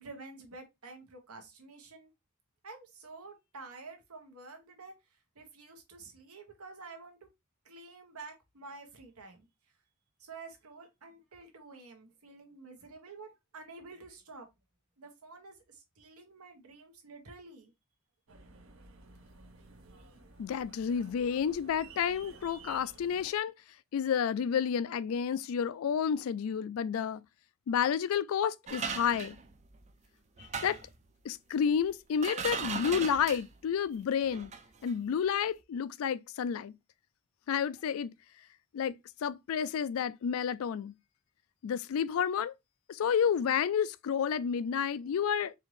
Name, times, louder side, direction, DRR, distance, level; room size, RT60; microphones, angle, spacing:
voice 1, 0.0-2.1 2.6-4.9 5.3-7.2 7.6-9.5 10.2-14.5 15.0-17.7, right 3 dB, 85° right, 1.2 m, -49 dB
sound 1, 18.3-23.3, right 3 dB, 65° right, 0.7 m, -54 dB
voice 2, 20.4-23.5 23.9-27.2 27.7-29.4 30.4-30.8 31.2-34.5 34.8-36.8 37.5-38.1 38.7-40.9 41.6-42.5 42.9-45.5, left 7 dB, 70° left, 0.3 m, -30 dB
sound 2, 28.7-29.9 30.4-31.0 31.8-31.9 32.1-33.6 34.2-34.6 34.9-35.0, right 6 dB, 30° right, 0.4 m, -38 dB
4.5 x 2.5 x 3.2 m
head